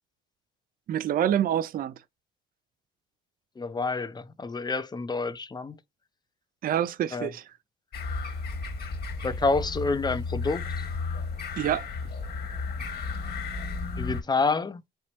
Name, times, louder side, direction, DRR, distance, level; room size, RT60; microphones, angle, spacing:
voice 1, 0.9-1.9 6.6-7.4 11.6-11.9, right 10 dB, 45° right, 0.4 m, -26 dB
voice 2, 3.6-5.8 7.1-7.3 9.2-10.8 14.0-14.8, left 3 dB, 20° left, 0.5 m, -28 dB
sound 1, 7.9-14.2, left 4 dB, 50° left, 1.5 m, -33 dB
4.4 x 2.9 x 2.9 m
cardioid pair, 90°, 20 cm